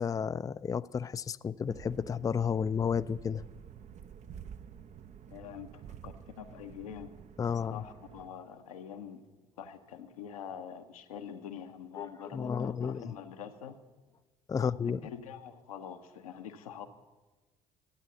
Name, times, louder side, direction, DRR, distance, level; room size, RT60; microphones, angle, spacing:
voice 1, 0.0-3.4 7.4-7.8 12.0-12.1 12.3-13.0 14.5-15.0, left 6 dB, 20° left, 0.3 m, -32 dB
sound 1, 1.7-8.3, right 8 dB, 40° right, 0.5 m, -50 dB
voice 2, 5.3-7.2 7.6-9.3 9.6-13.8 14.6-14.7 15.0-16.9, left 8 dB, 85° left, 0.8 m, -45 dB
12.5 x 8.9 x 7.9 m
hypercardioid pair, 50°, 18 cm